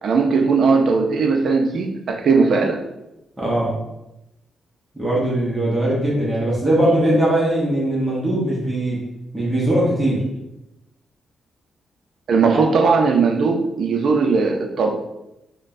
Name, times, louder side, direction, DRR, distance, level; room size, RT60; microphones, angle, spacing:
voice 1, 0.0-2.8 12.3-14.9, right 4 dB, 60° right, 3 dB, 0.5 m, -18 dB
voice 2, 3.4-3.8 4.9-9.0 9.3-10.3 12.5-12.6, right 1 dB, 15° right, -6 dB, 1.0 m, -20 dB
5.2 x 2.2 x 2.6 m, 0.91 s
cardioid pair, 130°, 0 cm